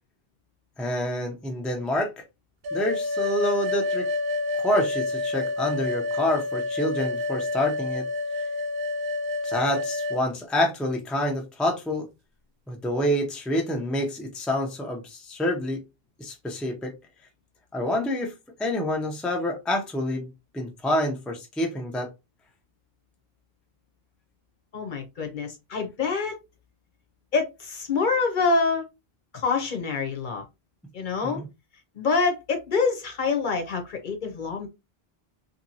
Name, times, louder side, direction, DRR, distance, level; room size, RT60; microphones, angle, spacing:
voice 1, 0.8-2.1 2.7-4.1 4.6-8.0 9.4-12.1 12.7-15.8 16.2-16.9 17.7-18.3 18.6-22.1 31.2-31.5, left 1 dB, ahead, 0.5 m, -27 dB
sound 1, 2.6-10.2, left 3 dB, 70° right, 0.7 m, -28 dB
voice 2, 24.7-26.4 27.3-28.8 29.3-30.4 30.9-31.4 31.9-34.7, left 4 dB, 55° left, 0.8 m, -26 dB
2.9 x 2.6 x 2.7 m
omnidirectional pair, 1.0 m